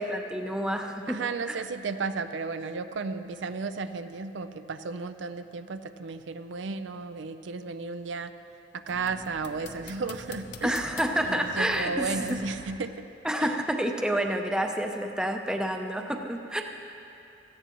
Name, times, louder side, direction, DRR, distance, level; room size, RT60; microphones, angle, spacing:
voice 1, 0.0-1.2 1.5-1.6 10.6-12.4 13.2-16.6, equal, 5° right, 3 dB, 0.6 m, -29 dB
voice 2, 1.1-8.3 8.7-10.8 11.2-13.0 13.4-13.6, right 4 dB, 75° right, 10 dB, 0.5 m, -34 dB
sound 1, 8.9-12.7, left 3 dB, 60° left, 0.8 m, -45 dB
17.0 x 14.5 x 3.0 m, 2.8 s
head